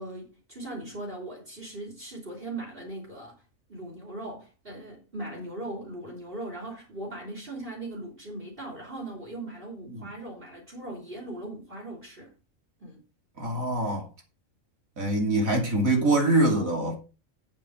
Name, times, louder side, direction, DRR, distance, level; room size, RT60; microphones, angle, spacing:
voice 1, 0.0-3.4 3.7-12.3 12.8-13.0, right 1 dB, 45° right, 3.6 m, -39 dB
voice 2, 13.4-14.1 15.0-17.0, right 2 dB, 90° right, 3.3 m, -24 dB
8.9 x 7.7 x 5.0 m
omnidirectional pair, 1.4 m